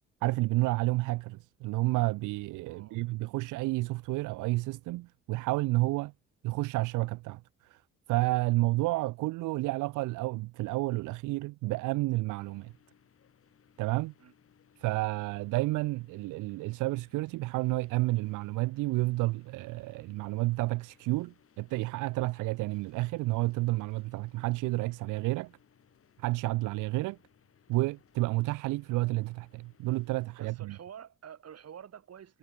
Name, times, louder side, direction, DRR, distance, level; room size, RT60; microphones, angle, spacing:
voice 1, 0.2-6.1 6.4-7.8 8.1-12.7 13.8-14.1 14.8-25.5 26.2-27.2 27.7-30.8, right 20 dB, 85° right, 0.5 m, -30 dB
voice 2, 2.7-3.0 14.2-14.3 30.4-32.4, right 8 dB, 55° right, 3.6 m, -48 dB
sound 1, 12.4-30.4, left 7 dB, 45° left, 2.5 m, -66 dB
cardioid pair, 90°, 30 cm